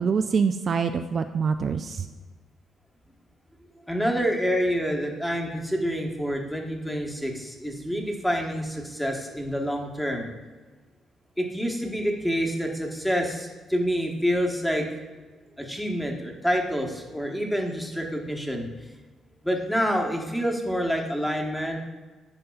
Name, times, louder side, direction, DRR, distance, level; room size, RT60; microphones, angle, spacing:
voice 1, 0.0-2.1, right 5 dB, 50° right, 7 dB, 0.3 m, -25 dB
voice 2, 3.9-10.3 11.4-14.9 15.6-18.7 19.4-21.9, equal, 5° left, 1 dB, 1.1 m, -27 dB
10.0 x 5.4 x 2.3 m, 1.3 s
cardioid pair, 90°, 0 cm